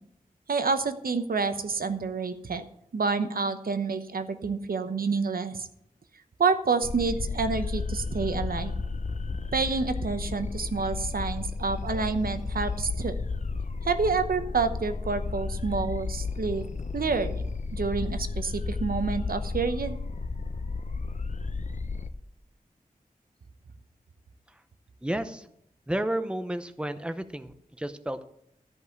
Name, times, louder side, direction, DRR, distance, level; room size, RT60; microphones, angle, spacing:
voice 1, 0.5-2.6 2.9-5.7 6.4-8.8 9.5-13.1 13.9-16.7 16.9-17.5 17.7-20.0, right 4 dB, 90° right, 10 dB, 0.9 m, -28 dB
sound 1, 6.8-22.1, left 4 dB, 55° left, 0.8 m, -33 dB
voice 2, 25.0-25.4 25.9-28.2, right 1 dB, 5° right, 10 dB, 0.8 m, -32 dB
13.5 x 5.5 x 7.9 m, 0.73 s
wide cardioid pair, 90°, 15 cm